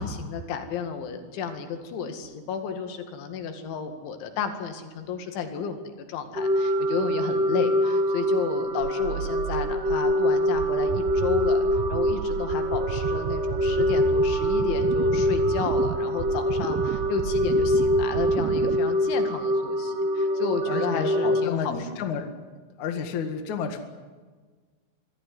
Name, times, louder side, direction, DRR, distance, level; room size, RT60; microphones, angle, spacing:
voice 1, 0.0-21.9, left 6 dB, 80° left, 6 dB, 4.4 m, -32 dB
sound 1, 6.4-21.5, equal, 40° right, 1.7 m, -24 dB
sound 2, 8.8-18.8, right 10 dB, 85° right, 2.0 m, -32 dB
voice 2, 20.7-22.3 22.8-23.8, left 6 dB, 50° left, 6 dB, 2.6 m, -31 dB
25.0 x 14.5 x 9.7 m, 1.4 s
omnidirectional pair, 5.3 m